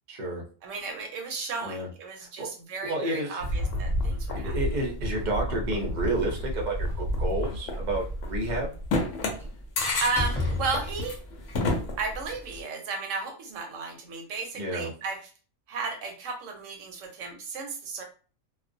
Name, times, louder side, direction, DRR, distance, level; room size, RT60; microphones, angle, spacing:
voice 1, 0.1-0.4 1.6-1.9 2.2-2.5 2.9-3.4 4.4-8.7 14.6-14.9, right 1 dB, 50° right, 0 dB, 0.6 m, -30 dB
voice 2, 0.6-4.5 10.0-11.2 12.0-15.2 15.7-18.0, right 4 dB, 75° right, 3 dB, 0.9 m, -34 dB
sound 1, 3.4-12.6, left 1 dB, 70° left, 0.9 m, -30 dB
Slam, 6.2-7.3 9.4-9.6 10.1-11.3, left 2 dB, 5° left, 0.4 m, -32 dB
2.3 x 2.1 x 2.5 m, 0.38 s
omnidirectional pair, 1.4 m